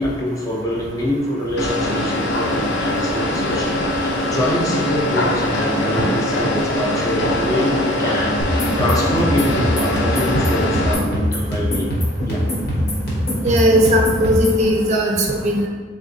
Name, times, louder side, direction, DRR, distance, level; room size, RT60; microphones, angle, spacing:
voice 1, 0.0-11.9 12.2-12.5, left 1 dB, 20° left, -3 dB, 0.5 m, -25 dB
sound 1, 1.6-10.9, left 1 dB, 90° left, 0.6 m, -22 dB
sound 2, 8.4-14.6, equal, 60° left, 1.1 m, -22 dB
voice 2, 13.4-15.7, equal, 40° right, 0 dB, 0.5 m, -17 dB
3.8 x 3.3 x 2.6 m, 1.4 s
head